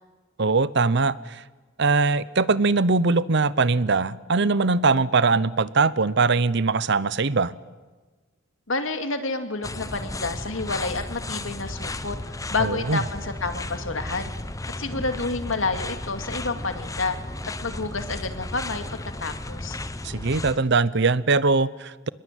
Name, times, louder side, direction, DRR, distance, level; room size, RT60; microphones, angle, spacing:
voice 1, 0.4-1.4 1.8-7.5 12.6-13.0 20.0-22.1, right 4 dB, 60° right, 17 dB, 0.8 m, -21 dB
voice 2, 8.7-14.3 14.8-17.2 17.6-18.8 19.2-19.8, left 3 dB, 80° left, 7 dB, 2.4 m, -29 dB
sound 1, 9.6-20.6, left 2 dB, 15° left, 0.9 m, -34 dB
25.5 x 21.0 x 9.3 m, 1.3 s
head